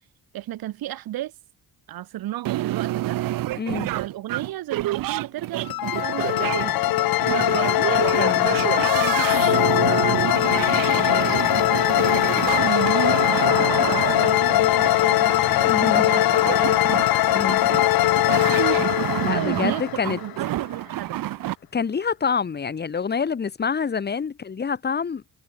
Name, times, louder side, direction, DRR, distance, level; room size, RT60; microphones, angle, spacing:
voice 1, 0.3-1.3 1.9-3.2 3.9-7.9 8.6-16.8 17.8-18.3 19.3-21.2, right 14 dB, 85° right, 4.0 m, -35 dB
sound 1, 2.4-21.5, right 15 dB, 70° right, 1.0 m, -28 dB
voice 2, 3.6-3.9 8.2-8.6 15.6-16.0 17.3-17.6 19.2-20.2 21.7-25.2, left 6 dB, 30° left, 3.6 m, -26 dB
Wind instrument woodwind instrument, 5.1-16.6, right 4 dB, 20° right, 7.2 m, -42 dB
sound 2, 5.7-20.5, left 15 dB, 80° left, 1.8 m, -21 dB
cardioid pair, 170°, 35 cm